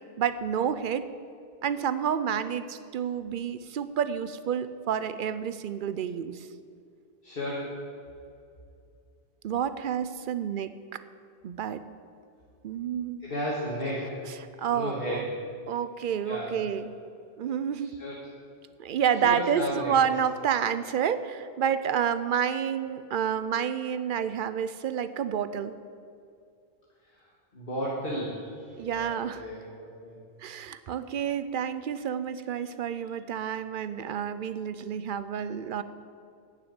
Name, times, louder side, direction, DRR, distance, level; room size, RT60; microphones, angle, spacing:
voice 1, 0.2-1.1 1.6-6.5 9.4-11.0 11.4-11.8 12.6-13.2 14.3-15.2 15.7-16.9 17.4-17.9 18.8-25.7 28.8-29.4 30.4-35.8, right 8 dB, 60° right, 12 dB, 0.6 m, -29 dB
voice 2, 7.2-7.7 13.2-14.2 14.7-15.3 16.3-16.6 18.0-18.1 19.2-20.0 27.6-28.4 28.9-30.1, equal, 60° left, -5 dB, 1.8 m, -33 dB
9.3 x 7.2 x 8.8 m, 2.4 s
omnidirectional pair, 1.1 m